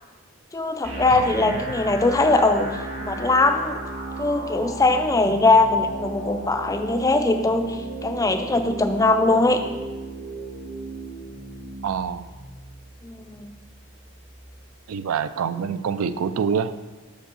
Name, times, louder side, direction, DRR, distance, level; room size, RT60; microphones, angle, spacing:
voice 1, 0.5-2.7 3.0-3.8 4.2-9.6 13.0-13.5, left 2 dB, 15° left, 7 dB, 0.3 m, -21 dB
sound 1, 0.8-14.8, right 2 dB, 60° right, 1.9 m, -36 dB
voice 2, 1.1-1.6 11.8-12.2 14.9-16.8, right 6 dB, 80° right, 13 dB, 0.4 m, -26 dB
5.4 x 5.1 x 6.6 m, 1.3 s
head